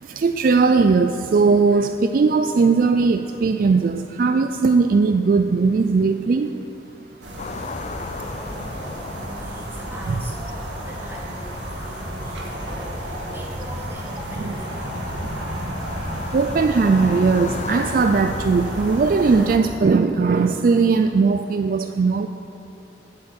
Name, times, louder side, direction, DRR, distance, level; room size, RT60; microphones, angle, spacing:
voice 1, 0.0-6.5 9.2-9.3 10.1-10.2 15.4-15.5 16.0-22.3, right 4 dB, 50° right, 8 dB, 0.3 m, -19 dB
sound 1, 7.2-19.6, equal, 85° right, 1.8 m, -32 dB
sound 2, 7.4-19.8, left 4 dB, 40° left, 0.3 m, -38 dB
voice 2, 8.3-15.3, right 1 dB, 15° right, -4 dB, 1.9 m, -41 dB
8.2 x 7.7 x 8.8 m, 2.7 s
head